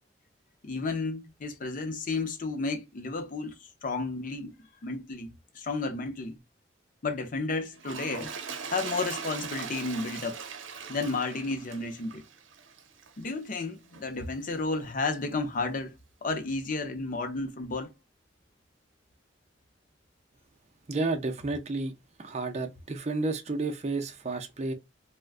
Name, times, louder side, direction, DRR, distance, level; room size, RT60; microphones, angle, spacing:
voice 1, 0.6-4.5 4.8-6.4 7.0-8.3 8.7-10.4 10.9-12.2 13.2-15.9 16.2-17.9, left 3 dB, 45° left, 0.6 m, -32 dB
Toilet flush, 7.7-13.2 13.9-14.0, right 5 dB, 90° right, 0.6 m, -40 dB
voice 2, 20.9-21.9 22.2-24.7, right 3 dB, 35° right, 0.5 m, -31 dB
3.5 x 2.1 x 2.5 m
head